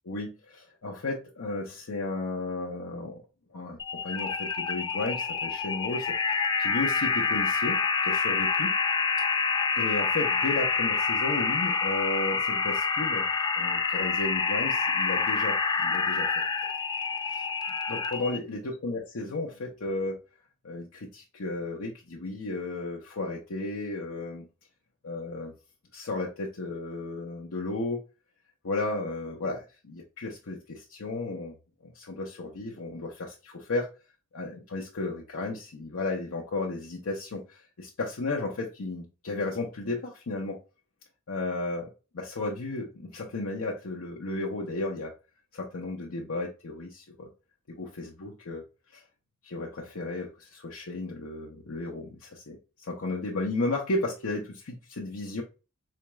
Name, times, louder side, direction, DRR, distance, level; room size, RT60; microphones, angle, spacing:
voice 1, 0.1-3.2 3.5-3.8 4.0-8.7 9.4-9.5 9.8-13.3 13.6-16.3 17.2-17.4 17.9-20.2 20.6-24.5 25.0-25.5 25.9-28.0 28.6-31.5 31.8-33.9 34.3-40.6 41.3-45.1 45.5-47.3 47.7-48.6 48.9-49.0 49.4-55.4, left 2 dB, 85° left, -2 dB, 0.7 m, -34 dB
sound 1, 3.8-18.4, left 5 dB, 20° left, 0.3 m, -27 dB
4.2 x 2.3 x 2.9 m, 0.31 s
head